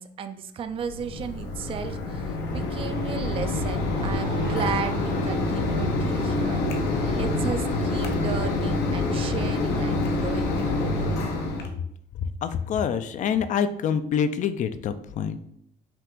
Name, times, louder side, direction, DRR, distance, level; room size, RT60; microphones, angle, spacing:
voice 1, 0.0-6.6 7.0-11.1, right 7 dB, 35° right, 9 dB, 0.4 m, -35 dB
Mechanisms, 0.7-11.7, left 2 dB, 80° left, 0.8 m, -26 dB
sound 1, 3.5-6.0, right 4 dB, 55° right, 1.0 m, -45 dB
voice 2, 12.2-15.4, left 7 dB, 50° left, 11 dB, 0.4 m, -26 dB
5.8 x 2.5 x 3.6 m, 0.71 s
cardioid pair, 110°, 17 cm